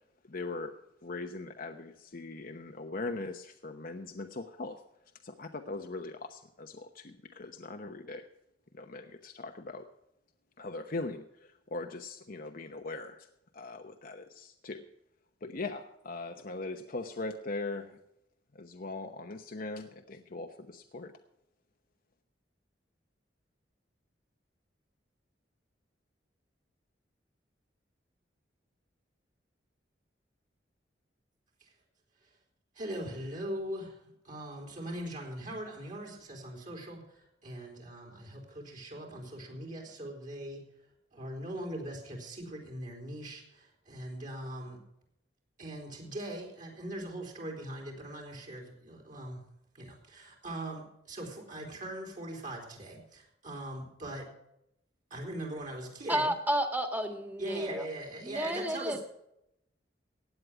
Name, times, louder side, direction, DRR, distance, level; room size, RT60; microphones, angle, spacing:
voice 1, 0.2-0.7 1.0-4.8 5.2-8.3 8.7-9.9 10.6-13.3 13.5-14.9 15.4-18.0 18.5-21.1, left 3 dB, 55° left, 5 dB, 0.9 m, -40 dB
voice 2, 32.8-40.7 41.1-44.8 45.6-49.4 49.7-54.3 55.1-56.3 57.4-59.0, right 1 dB, 45° right, 0 dB, 3.6 m, -41 dB
voice 3, 56.1-57.8 58.2-59.0, right 1 dB, 10° right, 6 dB, 1.7 m, -31 dB
16.0 x 9.6 x 4.8 m, 0.81 s
head